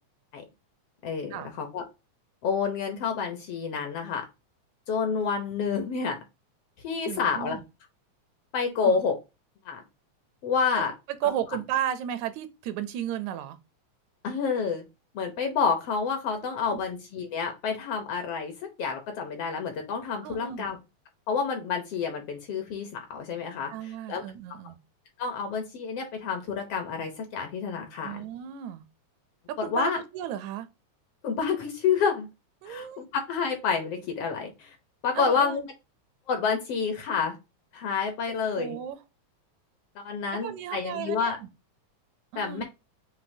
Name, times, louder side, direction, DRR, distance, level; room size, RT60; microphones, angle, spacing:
voice 1, 1.0-1.8 2.4-4.2 4.9-6.2 6.8-7.6 8.5-9.2 9.6-9.8 10.4-10.9 14.2-14.8 15.1-20.8 21.3-24.2 25.2-28.2 29.6-30.0 31.2-32.3 32.6-34.8 35.0-35.6 36.3-37.4 37.7-38.8 39.9-41.4 42.4-42.6, left 6 dB, 70° left, 1.5 m, -29 dB
voice 2, 7.1-7.6 8.8-9.0 10.7-10.8 11.2-13.6 16.4-16.8 20.2-20.7 23.7-24.8 28.0-28.8 29.5-30.7 32.6-33.0 35.2-35.7 38.5-39.0 40.4-41.5 42.3-42.6, right 10 dB, 80° right, 1.9 m, -34 dB
7.1 x 2.7 x 2.6 m
omnidirectional pair, 3.3 m